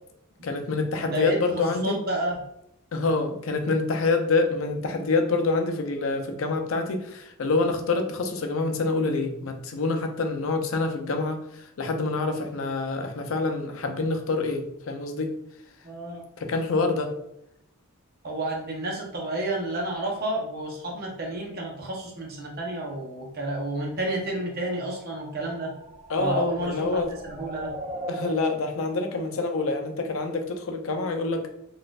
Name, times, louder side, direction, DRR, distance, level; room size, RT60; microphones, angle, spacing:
voice 1, 0.4-2.0 2.9-15.3 16.4-17.1 26.1-27.1 28.1-31.5, left 3 dB, 70° left, 6 dB, 0.5 m, -26 dB
voice 2, 1.0-2.4 15.8-16.2 18.2-25.7 26.2-27.7, right 1 dB, 45° right, -1 dB, 0.8 m, -30 dB
sound 1, 24.7-30.5, right 1 dB, 30° right, 0.4 m, -41 dB
4.1 x 2.5 x 2.3 m, 0.77 s
head